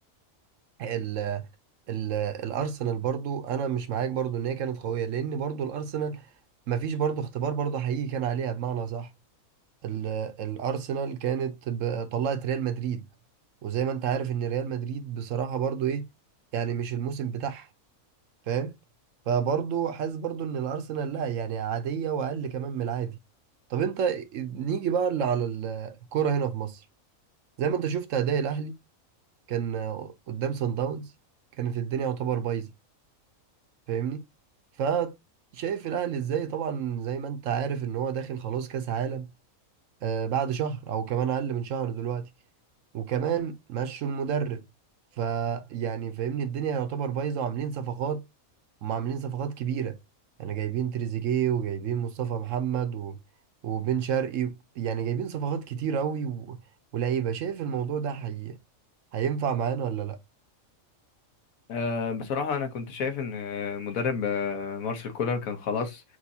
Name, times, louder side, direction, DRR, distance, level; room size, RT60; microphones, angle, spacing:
voice 1, 0.8-1.5 1.9-6.3 6.7-9.1 9.8-13.0 13.6-16.1 16.5-17.7 18.5-18.7 19.3-23.2 23.7-26.8 27.6-28.8 29.5-31.1 31.6-32.7 33.9-34.2 34.8-35.2 35.5-39.3 40.0-42.3 42.9-44.6 45.2-48.2 48.8-50.0 50.4-53.2 53.6-56.6 56.9-58.6 59.1-60.2, right 8 dB, 70° right, 0.9 m, -29 dB
voice 2, 61.7-66.0, left 5 dB, 75° left, 1.3 m, -30 dB
6.2 x 2.6 x 2.7 m
omnidirectional pair, 1.5 m